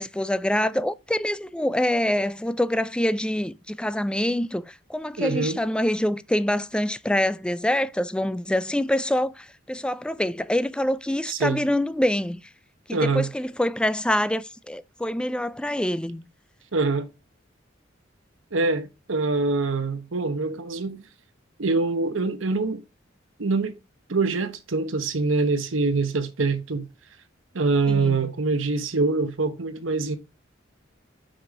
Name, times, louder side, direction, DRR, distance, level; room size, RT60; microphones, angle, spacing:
voice 1, 0.0-12.4 12.9-16.3 27.9-28.2, left 1 dB, 5° left, 0.4 m, -25 dB
voice 2, 5.2-5.6 11.3-11.6 12.9-13.3 16.7-17.1 18.5-21.0 21.6-22.8 23.4-23.7 24.1-26.9 27.5-30.2, right 3 dB, 80° right, 1.0 m, -24 dB
6.0 x 5.0 x 5.9 m
head